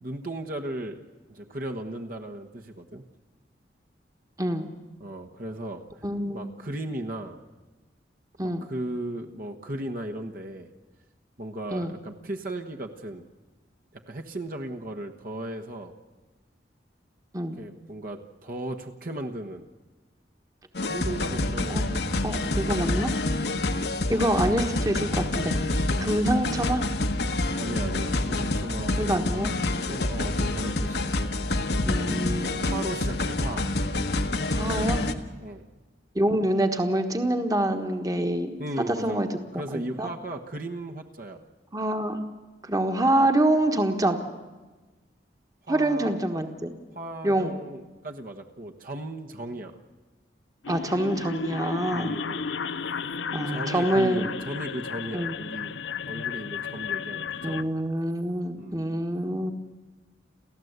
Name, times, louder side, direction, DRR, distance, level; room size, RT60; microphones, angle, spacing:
voice 1, 0.0-1.0 1.3-3.0 5.0-5.8 6.3-7.4 8.4-10.7 11.4-13.3 13.9-15.9 17.6-19.7 20.8-22.0 25.9-26.1 27.6-29.3 29.9-31.2 32.6-33.7 35.4-35.7 38.6-39.3 39.5-41.4 45.6-46.2 46.9-49.8 51.9-52.5 53.5-55.7 56.1-57.7 58.6-58.8, right 1 dB, 50° right, 3 dB, 1.3 m, -36 dB
voice 2, 4.4-4.7 6.0-6.5 8.4-8.7 11.7-11.9 17.3-17.6 21.7-23.1 24.1-25.5 26.0-26.8 29.0-29.6 31.9-32.5 34.6-35.1 36.1-38.5 38.9-39.3 39.7-40.1 41.7-42.2 42.6-44.2 45.7-46.7 47.2-47.5 50.7-52.1 53.3-54.3 55.1-55.3 57.4-59.5, right 1 dB, 20° right, 6 dB, 1.4 m, -26 dB
sound 1, 20.7-35.1, left 2 dB, 60° left, 1.3 m, -27 dB
sound 2, 50.6-57.6, left 5 dB, 85° left, 0.7 m, -33 dB
30.0 x 14.0 x 8.1 m, 1.3 s
head